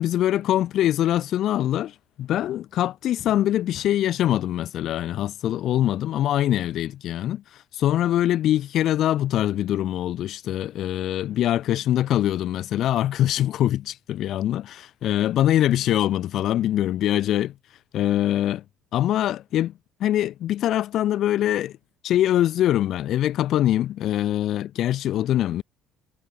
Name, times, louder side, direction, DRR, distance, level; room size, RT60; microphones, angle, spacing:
voice 1, 0.0-17.5 17.9-18.6 18.9-19.7 20.0-21.8 22.0-25.6, left 12 dB, 50° left, 4.9 m, -23 dB
cardioid pair, 160°, 0 cm